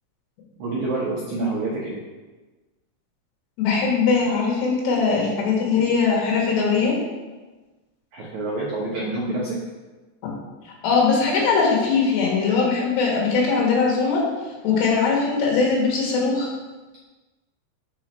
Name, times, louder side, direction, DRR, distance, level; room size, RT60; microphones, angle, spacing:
voice 1, 0.6-2.0 8.1-9.6, right 2 dB, 70° right, -4 dB, 1.8 m, -27 dB
voice 2, 3.6-7.0 10.8-14.2 14.6-16.5, left 5 dB, 75° left, -2 dB, 4.0 m, -20 dB
7.1 x 5.5 x 6.1 m, 1.2 s
omnidirectional pair, 4.9 m